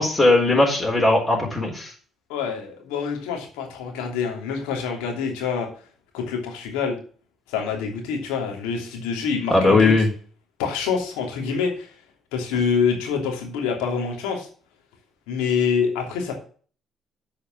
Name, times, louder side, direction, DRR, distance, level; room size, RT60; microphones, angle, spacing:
voice 1, 0.0-1.9 9.5-10.1, left 2 dB, 20° left, -2 dB, 4.1 m, -18 dB
voice 2, 2.3-5.7 6.1-7.0 7.5-9.9 10.6-11.9 12.3-14.5 15.3-16.3, left 6 dB, 85° left, 2 dB, 2.9 m, -26 dB
8.5 x 5.2 x 7.5 m, 0.42 s
supercardioid pair, 65°, 0 cm